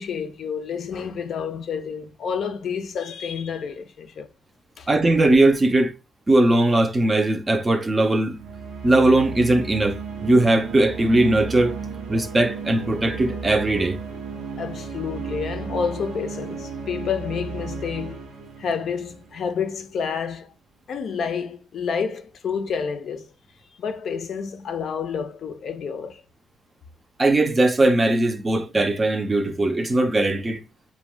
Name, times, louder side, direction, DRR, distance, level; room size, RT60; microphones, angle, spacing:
voice 1, 0.0-4.3 4.8-4.9 14.6-18.2 18.6-20.5 20.9-23.3 23.8-26.2, left 6 dB, 60° left, 0.5 m, -29 dB
voice 2, 4.9-5.9 6.3-8.4 8.8-11.8 12.1-14.0 27.2-30.6, right 2 dB, 25° right, 0.5 m, -19 dB
sound 1, 8.3-19.9, right 5 dB, 90° right, 0.5 m, -34 dB
2.5 x 2.1 x 3.2 m
cardioid pair, 90°, 0 cm